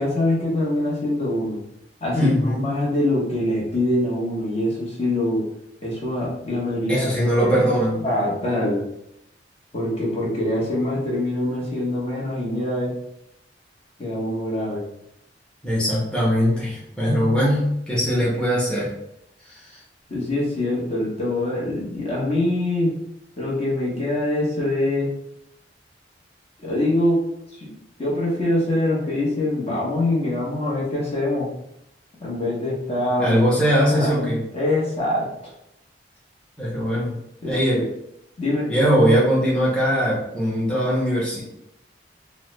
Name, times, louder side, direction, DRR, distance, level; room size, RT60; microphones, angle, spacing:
voice 1, 0.0-1.6 2.0-5.4 5.8-7.6 8.0-8.8 9.7-12.9 14.0-14.8 20.1-22.9 23.4-25.1 26.6-27.2 27.6-27.7 28.0-31.5 32.2-33.4 33.9-35.3 37.4-37.9 38.4-38.7, left 1 dB, 35° left, -5 dB, 0.9 m, -24 dB
voice 2, 2.1-2.7 6.9-8.1 15.6-18.9 19.5-19.6 33.2-34.4 36.6-37.1 37.5-37.8 38.7-41.4, equal, 5° left, -8 dB, 0.8 m, -20 dB
3.0 x 2.1 x 3.1 m, 0.80 s
head